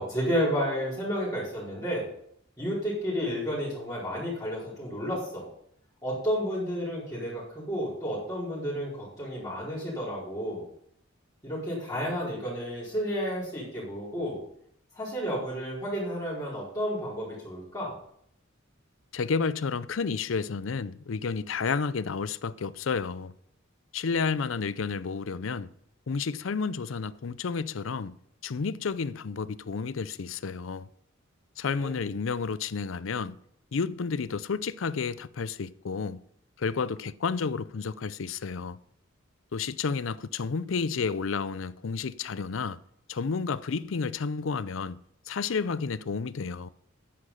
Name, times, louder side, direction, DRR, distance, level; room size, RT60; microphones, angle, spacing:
voice 1, 0.0-2.1 2.6-5.5 6.0-10.6 11.4-14.4 14.9-17.9 31.8-32.0, equal, 20° left, 5.0 m, -31 dB
voice 2, 19.1-23.3 23.9-25.7 26.1-28.1 28.4-30.9 31.6-33.4 33.7-36.2 36.6-38.8 39.5-42.8 43.1-45.0 45.3-46.7, left 5 dB, 70° left, 0.5 m, -31 dB
10.0 x 10.0 x 5.7 m
head